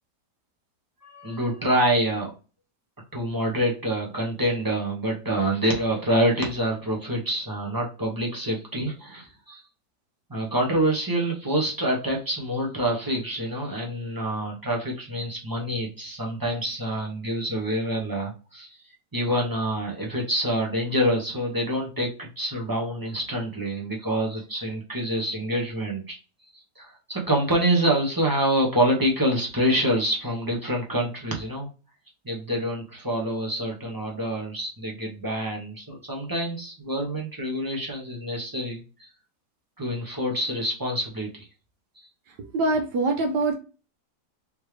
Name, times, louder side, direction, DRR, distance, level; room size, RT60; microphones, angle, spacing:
voice 1, 1.0-2.3 3.1-9.6 10.3-18.7 19.1-26.2 26.8-31.7 32.2-39.1 39.8-41.5 42.0-42.1, right 1 dB, 15° right, -1 dB, 0.8 m, -26 dB
voice 2, 42.5-43.6, right 2 dB, 80° right, 4 dB, 1.3 m, -23 dB
3.5 x 3.2 x 3.2 m, 0.33 s
omnidirectional pair, 1.8 m